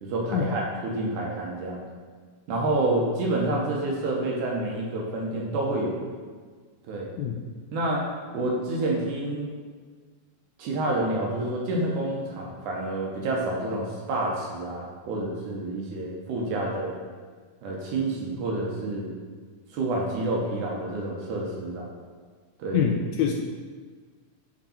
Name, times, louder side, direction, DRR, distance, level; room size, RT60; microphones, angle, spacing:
voice 1, 0.0-1.8 2.5-6.0 6.9-7.1 7.7-8.1 8.3-9.5 10.6-16.9 17.6-19.1 19.7-21.9 22.6-22.9, right 2 dB, 75° right, -2 dB, 2.4 m, -28 dB
voice 2, 22.7-23.3, left 8 dB, 80° left, 2 dB, 1.7 m, -25 dB
9.7 x 3.7 x 4.2 m, 1.5 s
omnidirectional pair, 3.7 m